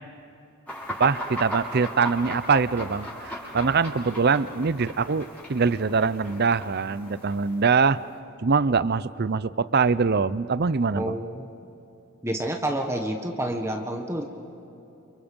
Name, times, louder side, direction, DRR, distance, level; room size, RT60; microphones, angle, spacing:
sound 1, 0.7-8.1, equal, 5° left, 6.4 m, -37 dB
voice 1, 1.0-8.0 8.4-11.2, right 5 dB, 45° right, 16 dB, 0.6 m, -23 dB
voice 2, 10.9-11.5 12.2-14.2, right 1 dB, 10° right, 4 dB, 1.4 m, -29 dB
29.5 x 28.5 x 5.4 m, 3.0 s
head